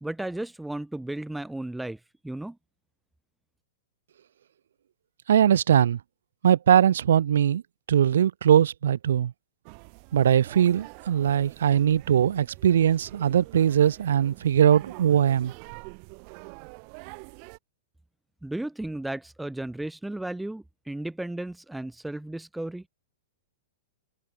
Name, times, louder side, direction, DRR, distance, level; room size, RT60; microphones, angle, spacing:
voice 1, 0.0-2.6 18.4-22.9, right 1 dB, 5° right, 0.8 m, -34 dB
voice 2, 5.3-6.0 6.4-7.6 7.9-9.3 10.1-15.5, right 9 dB, 75° right, 0.5 m, -21 dB
sound 1, 9.6-17.6, right 40 dB or more, 45° right, 5.3 m, -46 dB
hypercardioid pair, 130°, 0 cm